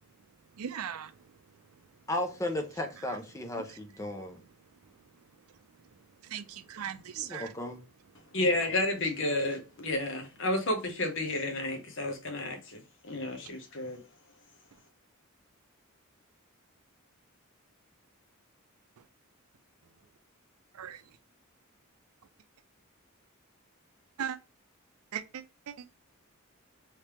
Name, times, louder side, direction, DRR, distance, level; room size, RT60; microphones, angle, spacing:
voice 1, 0.6-1.1 3.5-3.6 6.2-7.5 20.7-21.0 24.2-24.4 25.1-25.7, right 8 dB, 85° right, 0.4 m, -38 dB
voice 2, 2.1-4.4 7.2-7.8, left 1 dB, 15° left, 0.6 m, -35 dB
voice 3, 8.3-12.8 13.1-14.0, left 1 dB, 60° left, 0.9 m, -31 dB
3.3 x 3.2 x 3.0 m
head